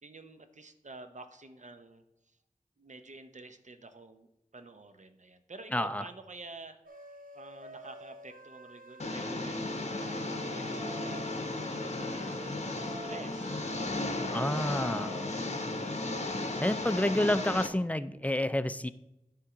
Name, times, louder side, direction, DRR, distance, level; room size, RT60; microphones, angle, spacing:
voice 1, 0.0-2.4 2.8-7.0 7.3-15.4, right 3 dB, 60° right, 8 dB, 0.8 m, -50 dB
voice 2, 5.7-6.0 14.3-15.1 16.6-18.9, left 1 dB, 10° left, 13 dB, 0.4 m, -29 dB
sound 1, 6.8-9.4 9.9-12.4 12.8-15.3 15.7-16.5, right 2 dB, 90° right, 0.9 m, -49 dB
Engine, 9.0-17.7, left 2 dB, 50° left, 0.9 m, -35 dB
sound 2, 9.6-17.5, equal, 25° left, 1.1 m, -47 dB
10.0 x 3.7 x 6.0 m, 0.91 s
wide cardioid pair, 40°, 14 cm